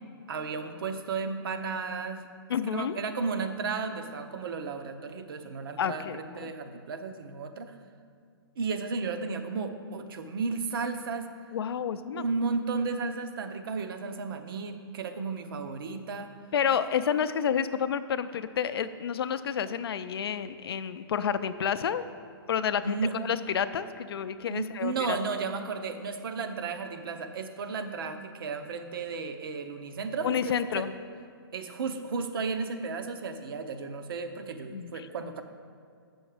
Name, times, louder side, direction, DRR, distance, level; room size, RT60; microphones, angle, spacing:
voice 1, 0.3-2.2 2.7-7.8 8.6-11.3 12.1-16.4 22.8-23.1 24.5-30.9 31.5-35.4, right 4 dB, 65° right, 8 dB, 0.8 m, -34 dB
voice 2, 2.5-3.0 5.8-6.5 11.5-12.2 16.5-22.0 22.5-25.2 30.2-30.9 34.7-35.1, left 8 dB, 75° left, 12 dB, 0.5 m, -30 dB
7.8 x 6.3 x 4.9 m, 2.2 s
hypercardioid pair, 145°, 13 cm